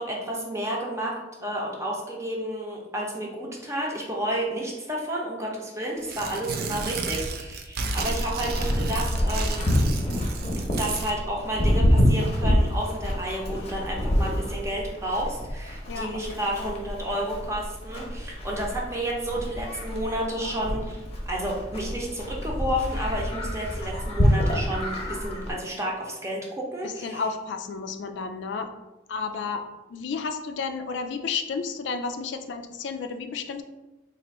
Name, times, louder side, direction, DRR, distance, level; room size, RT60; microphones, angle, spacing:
voice 1, 0.0-9.7 10.6-27.2, right 1 dB, 15° right, -2 dB, 0.7 m, -31 dB
Tearing, 6.0-11.1, right 3 dB, 55° right, 0.4 m, -33 dB
Livestock farm animals working animals, 7.8-25.5, equal, 35° left, 0.8 m, -27 dB
voice 2, 15.9-16.7 26.8-28.7 29.1-29.6 29.9-33.6, left 5 dB, 80° left, 6 dB, 0.4 m, -32 dB
3.0 x 2.5 x 4.2 m, 1.0 s
head